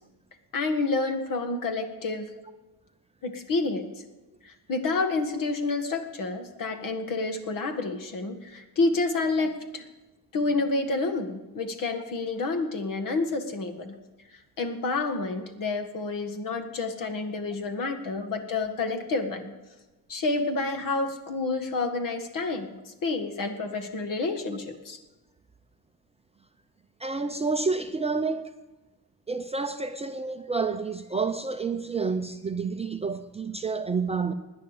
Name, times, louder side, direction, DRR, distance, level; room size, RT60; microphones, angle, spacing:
voice 1, 0.5-2.3 3.2-3.9 4.4-9.8 10.3-14.0 14.6-19.5 20.1-25.0, left 3 dB, 55° left, 1.8 m, -29 dB
voice 2, 27.0-28.5 29.3-34.3, right 4 dB, 15° right, 0.5 m, -29 dB
17.0 x 10.5 x 5.0 m
cardioid pair, 160°, 40 cm